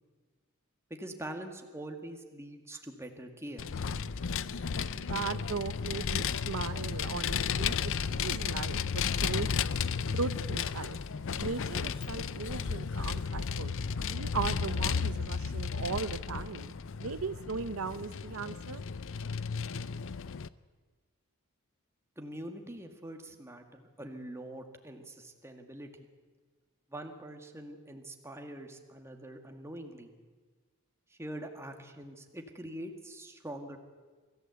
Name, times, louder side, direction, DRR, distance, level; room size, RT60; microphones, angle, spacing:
voice 1, 0.9-3.6 22.2-26.1 26.9-30.1 31.1-33.8, right 1 dB, 10° right, 4 dB, 1.9 m, -44 dB
Vehicle, 3.6-20.5, left 6 dB, 60° left, 0.6 m, -33 dB
voice 2, 4.9-9.5 10.1-11.0 11.4-16.7 17.0-18.8, right 5 dB, 65° right, 12 dB, 0.6 m, -38 dB
24.5 x 15.0 x 8.1 m, 1.4 s
head